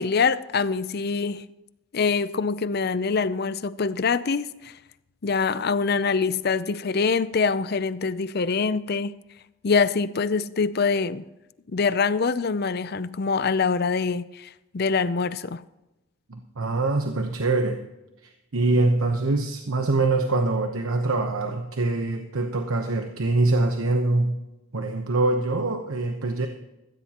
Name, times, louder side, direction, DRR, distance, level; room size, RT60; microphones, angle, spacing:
voice 1, 0.0-1.4 1.9-4.7 5.2-9.1 9.6-11.2 11.7-15.6, left 5 dB, 45° left, 0.5 m, -24 dB
voice 2, 16.3-17.8 18.2-24.4 24.7-26.5, right 2 dB, 80° right, 1.0 m, -24 dB
15.5 x 15.0 x 3.0 m
head